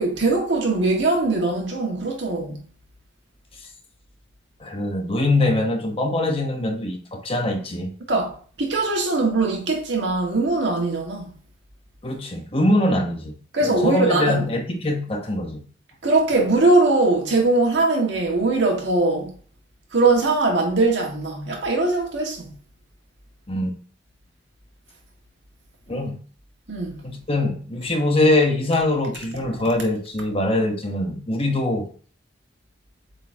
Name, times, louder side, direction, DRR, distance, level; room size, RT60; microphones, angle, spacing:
voice 1, 0.0-2.6 8.1-11.3 13.5-14.4 16.0-19.3 19.9-22.5 26.7-27.0, right 2 dB, 70° right, 1.8 m, -21 dB
voice 2, 4.6-7.9 12.0-13.3 13.6-15.6 23.5-23.7 25.9-26.2 27.0-31.9, left 1 dB, 30° left, 1.0 m, -23 dB
8.0 x 4.2 x 2.8 m
head